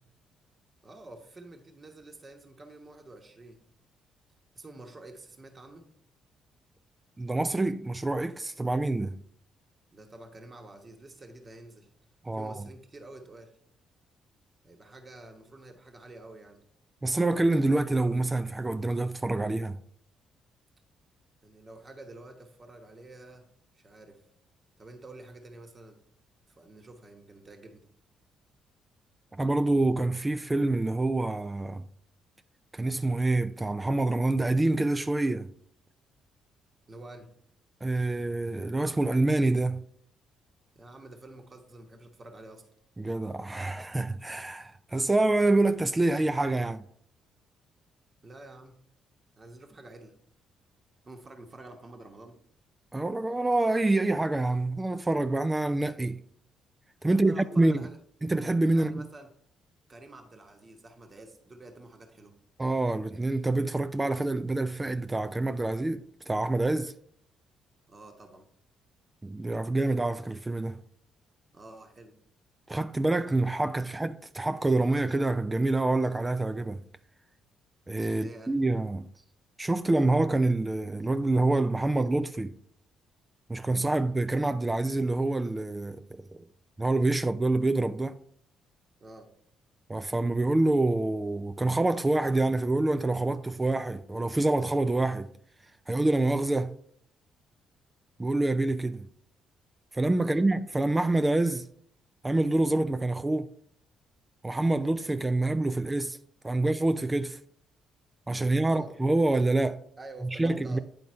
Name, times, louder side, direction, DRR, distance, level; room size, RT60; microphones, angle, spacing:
voice 1, 0.8-3.6 4.5-5.9 9.9-11.9 12.3-13.6 14.6-16.6 21.4-23.5 23.7-24.2 24.8-26.0 26.5-27.8 36.9-37.3 40.7-42.6 48.2-48.7 49.4-50.1 51.0-52.4 57.0-58.0 58.7-59.3 59.9-62.3 67.9-68.5 71.5-72.2 78.1-78.6 89.0-89.3 100.2-100.4 108.4-108.9 110.0-110.8, right 2 dB, 35° right, 1.3 m, -48 dB
voice 2, 7.2-9.2 12.2-12.6 17.0-19.8 29.4-31.8 32.7-35.5 37.8-39.8 43.0-46.8 52.9-56.2 57.0-57.9 58.2-59.1 62.6-66.9 69.2-70.8 72.7-76.8 77.9-79.1 79.6-82.5 83.5-86.5 86.8-88.2 89.9-95.3 95.9-96.7 98.2-99.1 99.9-101.7 102.2-103.5 104.4-106.2 106.4-107.4 108.3-109.8 110.4-110.8, right 2 dB, 20° right, 0.4 m, -26 dB
9.4 x 3.9 x 4.4 m
hypercardioid pair, 55°, 0 cm